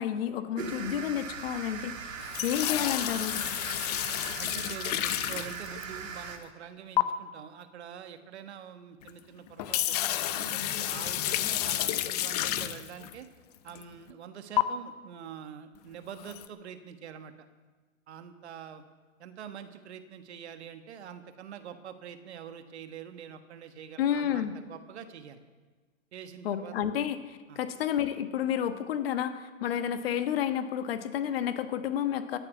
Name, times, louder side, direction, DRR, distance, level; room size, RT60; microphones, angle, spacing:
voice 1, 0.0-3.4 24.0-24.5 26.4-32.4, left 9 dB, 50° left, 9 dB, 1.3 m, -30 dB
sound 1, 0.6-6.4, right 6 dB, 80° right, 2.2 m, -40 dB
sound 2, 2.2-6.1 7.0-7.1 9.0-9.1 9.5-13.1 13.7-13.8 14.6-14.7 16.2-16.5, left 14 dB, 30° left, 0.6 m, -30 dB
voice 2, 4.4-13.3 13.6-17.3 18.1-18.8 19.2-25.4 26.1-26.7 27.5-27.6, right 8 dB, 55° right, 9 dB, 1.5 m, -45 dB
16.0 x 7.4 x 9.3 m, 1.4 s
hypercardioid pair, 130°, 39 cm